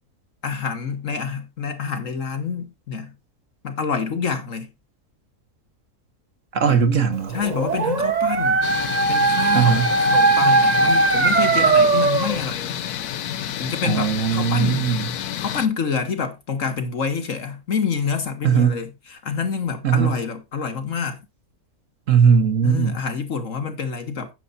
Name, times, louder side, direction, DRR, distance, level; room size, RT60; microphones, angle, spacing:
voice 1, 0.4-3.2 3.6-4.7 6.7-6.8 7.3-8.7 9.1-12.8 13.6-14.9 15.4-21.2 22.6-24.3, left 6 dB, 55° left, 1.8 m, -27 dB
voice 2, 6.5-7.4 9.5-9.9 13.8-15.1 18.4-18.8 19.8-20.2 22.1-23.0, right 7 dB, 60° right, 1.4 m, -19 dB
Dog, 7.3-12.4, right 3 dB, 35° right, 0.9 m, -19 dB
sound 1, 8.6-15.7, left 10 dB, 90° left, 1.3 m, -30 dB
9.5 x 6.9 x 4.1 m
omnidirectional pair, 1.6 m